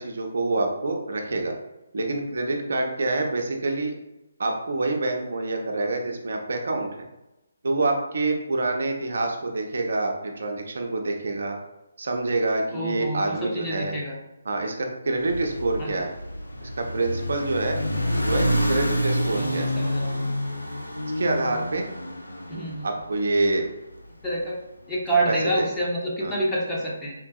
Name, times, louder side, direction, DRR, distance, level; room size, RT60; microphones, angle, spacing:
voice 1, 0.0-1.6 1.9-3.9 4.4-7.0 7.6-11.6 12.0-13.9 14.5-16.1 16.6-17.8 18.2-19.7 21.2-21.8 22.8-23.7 25.3-25.7 26.2-26.4, right 2 dB, 60° right, 3 dB, 0.6 m, -26 dB
voice 2, 12.7-14.2 15.8-16.1 18.0-18.6 19.3-20.3 22.5-22.9 24.2-24.6 24.9-27.1, right 1 dB, 10° left, -5 dB, 0.7 m, -28 dB
sound 1, 15.2-23.5, equal, 85° left, 0.5 m, -28 dB
3.7 x 2.6 x 2.3 m, 0.96 s
figure-of-eight pair, 145°, 0 cm